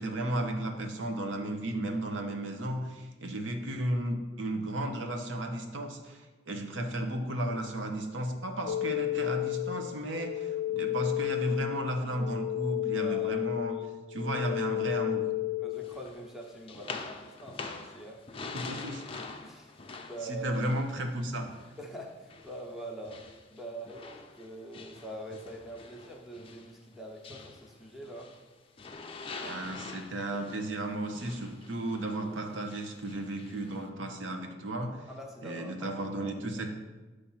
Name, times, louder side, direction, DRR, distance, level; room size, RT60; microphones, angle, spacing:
voice 1, 0.0-13.8 14.1-15.2 18.5-19.2 20.2-21.6 29.4-35.1 35.4-36.7, right 1 dB, 85° right, 4 dB, 0.9 m, -34 dB
sound 1, 8.7-16.0, left 15 dB, 85° left, 0.5 m, -32 dB
voice 2, 12.9-13.5 15.6-18.4 19.4-20.6 21.8-23.2 23.5-28.3 35.1-36.3, right 1 dB, ahead, 0 dB, 0.8 m, -44 dB
sound 2, 15.8-21.9 22.3-28.5 28.8-33.9, left 4 dB, 30° left, 0.5 m, -45 dB
8.6 x 3.3 x 5.7 m, 1.2 s
head